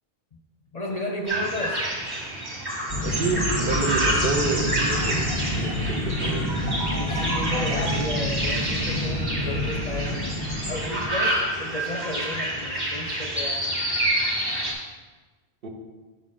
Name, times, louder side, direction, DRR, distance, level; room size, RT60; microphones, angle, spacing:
voice 1, 0.7-2.0 6.9-13.8, left 1 dB, 45° left, 2 dB, 0.6 m, -33 dB
sound 1, 1.3-14.7, right 1 dB, 45° right, 1.9 m, -28 dB
sound 2, 2.9-11.0, left 1 dB, 85° right, 2.7 m, -28 dB
voice 2, 3.0-5.3 5.5-6.5 15.6-15.7, right 3 dB, 60° right, 2 dB, 1.1 m, -29 dB
6.8 x 6.4 x 3.8 m, 1.3 s
omnidirectional pair, 1.1 m